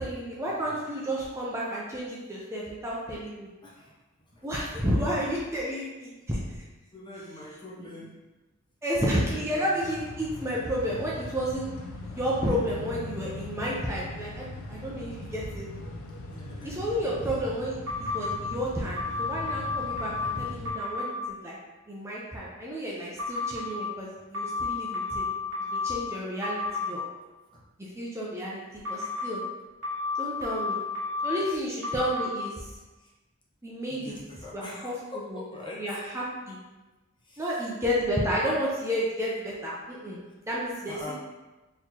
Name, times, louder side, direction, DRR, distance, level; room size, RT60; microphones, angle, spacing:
voice 1, 0.0-3.5 4.4-6.4 8.8-11.7 12.0-15.7 16.6-17.8 18.1-21.5 21.9-25.3 25.7-27.0 27.8-29.4 30.2-30.8 31.2-32.7 33.6-34.2 34.5-34.9 35.3-35.4 35.8-36.6 37.4-40.2 40.5-41.0, equal, 15° right, -5 dB, 0.5 m, -31 dB
voice 2, 3.6-4.5 4.8-5.3 6.9-8.2 9.0-9.7 11.9-12.2 16.3-16.8 27.5-27.6 31.4-31.6 33.0-33.1 33.9-35.8 37.2-37.7 40.9-41.1, left 2 dB, 25° left, -5 dB, 0.8 m, -44 dB
sound 1, 9.8-20.7, left 2 dB, 90° left, 0.5 m, -40 dB
sound 2, 17.9-18.3 19.0-20.3 20.6-21.1 23.2-23.7 24.3-26.0 26.4-26.9 28.8-29.3 29.8-31.4 31.8-32.3, left 3 dB, 65° right, 1.1 m, -31 dB
4.0 x 3.0 x 2.8 m, 1.2 s
head